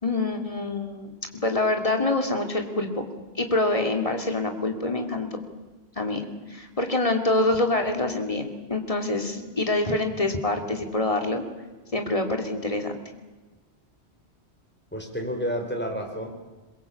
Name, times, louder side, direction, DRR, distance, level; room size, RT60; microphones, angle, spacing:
voice 1, 0.0-3.1 3.3-5.3 6.0-11.4 11.9-12.9, left 2 dB, 30° left, 4 dB, 2.7 m, -26 dB
voice 2, 14.9-16.3, equal, 10° left, 2 dB, 4.3 m, -30 dB
22.5 x 21.5 x 8.4 m, 1.2 s
omnidirectional pair, 1.1 m